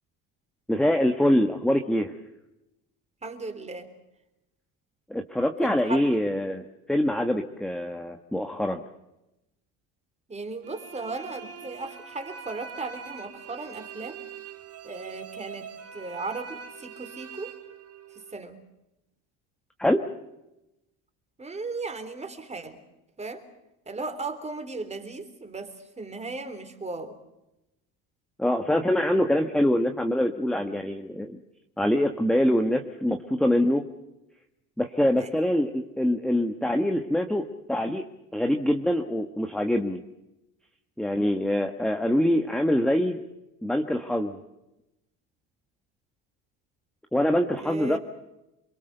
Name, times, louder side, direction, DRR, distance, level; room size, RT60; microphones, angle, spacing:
voice 1, 0.7-2.2 5.1-8.8 19.8-20.0 28.4-31.4 31.8-33.9 34.8-38.0 38.3-40.0 41.0-43.2 43.6-44.4 47.1-48.0, left 1 dB, ahead, 5 dB, 1.4 m, -24 dB
voice 2, 3.2-3.9 5.6-6.2 10.3-14.2 14.8-17.5 18.1-18.6 21.4-22.8 23.2-23.4 23.9-27.2 35.2-35.3 47.6-48.0, right 3 dB, 20° right, 8 dB, 3.6 m, -36 dB
sound 1, 10.6-18.4, right 7 dB, 40° right, 2.4 m, -43 dB
28.5 x 22.5 x 6.8 m, 0.93 s
cardioid pair, 130°, 37 cm